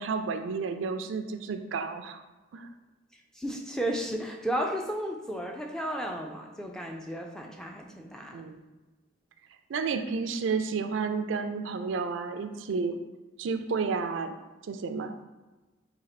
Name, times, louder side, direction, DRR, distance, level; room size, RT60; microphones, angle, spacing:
voice 1, 0.0-2.2 2.5-2.7 8.3-8.6 9.7-13.0 13.4-14.3 14.7-15.2, right 5 dB, 70° right, 7 dB, 0.4 m, -31 dB
voice 2, 3.3-8.5, right 1 dB, 5° left, 2 dB, 0.3 m, -33 dB
4.2 x 2.8 x 4.1 m, 1.2 s
head